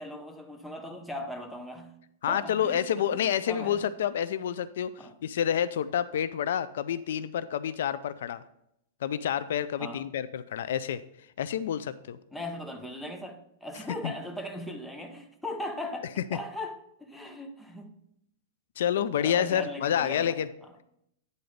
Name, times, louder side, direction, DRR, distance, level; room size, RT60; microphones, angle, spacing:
voice 1, 0.0-1.9 2.3-2.8 3.1-3.8 5.0-5.2 9.8-10.0 12.3-18.0 19.2-20.7, left 1 dB, ahead, 3 dB, 0.7 m, -39 dB
voice 2, 2.2-4.9 5.2-8.4 9.0-11.0 11.4-12.2 14.0-14.1 18.8-20.5, left 9 dB, 75° left, 15 dB, 0.4 m, -28 dB
9.4 x 3.9 x 5.1 m, 0.77 s
supercardioid pair, 165°, 0 cm